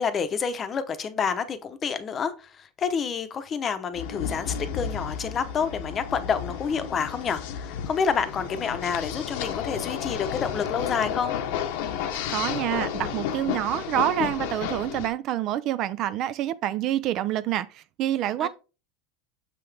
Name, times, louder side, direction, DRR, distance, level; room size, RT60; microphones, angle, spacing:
voice 1, 0.0-11.4 18.4-18.5, left 6 dB, 25° left, 0.8 m, -28 dB
sound 1, 3.9-15.1, left 8 dB, 70° left, 1.0 m, -32 dB
voice 2, 12.3-18.5, right 12 dB, 45° right, 0.4 m, -27 dB
6.8 x 5.8 x 3.4 m
supercardioid pair, 145°, 0 cm